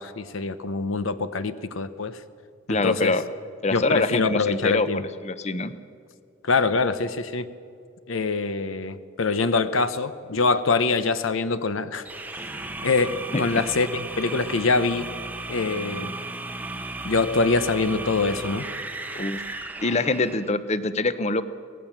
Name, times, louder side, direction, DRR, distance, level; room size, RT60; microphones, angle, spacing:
voice 1, 0.0-2.2 2.7-3.1 3.7-5.0 6.4-7.5 8.1-12.0 12.8-15.1 15.5-16.1 17.0-18.6, left 3 dB, 85° left, 12 dB, 0.9 m, -24 dB
voice 2, 2.7-3.2 3.6-4.9 5.2-5.7 13.3-13.6 19.1-19.4 19.8-21.4, left 2 dB, 35° left, 13 dB, 0.8 m, -24 dB
sound 1, 12.0-20.5, right 2 dB, 10° right, 0.9 m, -35 dB
24.5 x 18.0 x 7.4 m, 2.2 s
head